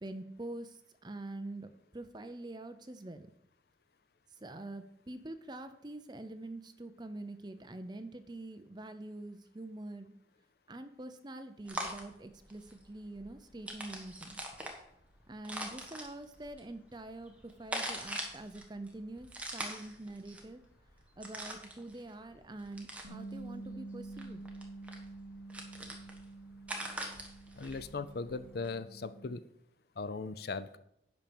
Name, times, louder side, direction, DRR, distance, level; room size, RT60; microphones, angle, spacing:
voice 1, 0.0-3.3 4.4-10.2 10.7-14.4 15.3-20.6 21.2-24.4, right 2 dB, 25° right, 9 dB, 0.7 m, -45 dB
sound 1, 11.6-28.7, right 1 dB, 5° right, 1.3 m, -44 dB
Bass guitar, 23.0-29.3, right 3 dB, 60° right, 1.6 m, -48 dB
voice 2, 27.6-29.4 30.0-30.8, left 4 dB, 60° left, 13 dB, 0.5 m, -38 dB
10.5 x 4.4 x 7.1 m, 0.75 s
head